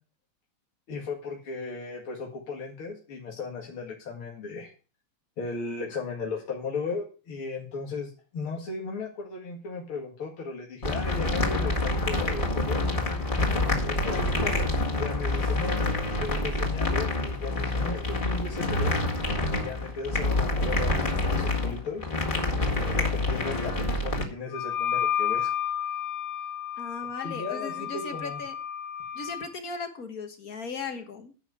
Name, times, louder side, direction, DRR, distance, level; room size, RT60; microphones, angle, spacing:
voice 1, 0.9-4.7 5.4-12.9 13.8-18.9 19.5-22.1 22.7-25.5 27.2-28.4, left 4 dB, 80° left, -1 dB, 3.0 m, -36 dB
sound 1, 10.8-24.2, left 2 dB, 25° left, 2.0 m, -27 dB
Wind instrument woodwind instrument, 24.5-29.5, left 9 dB, 65° left, 1.5 m, -31 dB
voice 2, 26.8-28.6 29.1-31.4, left 4 dB, 45° left, 6 dB, 1.8 m, -37 dB
11.0 x 5.6 x 8.2 m, 0.36 s
omnidirectional pair, 2.3 m